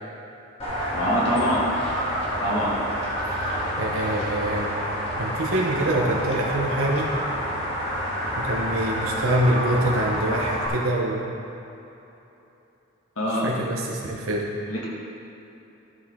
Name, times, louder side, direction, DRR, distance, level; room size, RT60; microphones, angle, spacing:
sound 1, 0.6-10.7, equal, 30° left, 1.8 m, -28 dB
voice 1, 0.9-1.7 2.4-2.8 13.2-13.5 14.7-14.9, equal, 75° left, -5 dB, 1.8 m, -24 dB
voice 2, 3.8-4.7 5.2-7.1 8.4-11.3 13.3-14.5, right 1 dB, 80° right, -2 dB, 1.0 m, -25 dB
12.5 x 6.8 x 3.7 m, 3.0 s
head